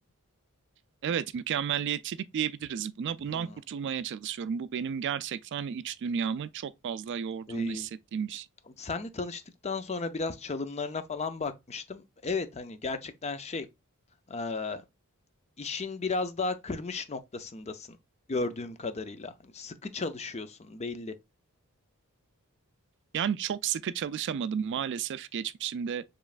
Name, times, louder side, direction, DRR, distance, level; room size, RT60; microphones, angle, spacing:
voice 1, 1.0-8.5 23.1-26.0, right 8 dB, 50° right, 0.3 m, -32 dB
voice 2, 7.5-7.9 8.8-13.7 14.3-14.8 15.6-18.0 18.3-21.1, left 3 dB, 30° left, 0.5 m, -34 dB
7.1 x 3.1 x 2.4 m
head